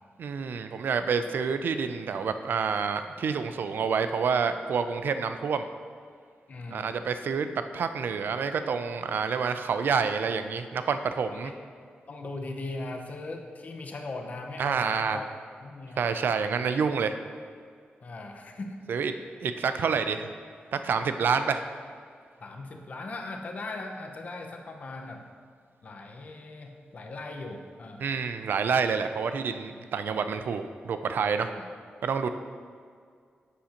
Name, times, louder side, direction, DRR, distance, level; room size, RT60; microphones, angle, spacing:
voice 1, 0.2-5.7 6.7-7.5 7.7-11.5 14.6-15.2 16.0-17.1 18.9-19.1 19.4-20.3 20.7-21.6 28.0-31.5 32.0-32.3, right 6 dB, 65° right, 9 dB, 0.4 m, -28 dB
voice 2, 6.5-6.9 11.3-11.5 12.1-15.3 15.6-16.6 18.0-18.8 22.4-25.2 25.8-28.1 31.5-31.7, left 2 dB, 45° left, 3 dB, 0.6 m, -39 dB
8.2 x 6.3 x 2.9 m, 2.1 s
wide cardioid pair, 165°, 4 cm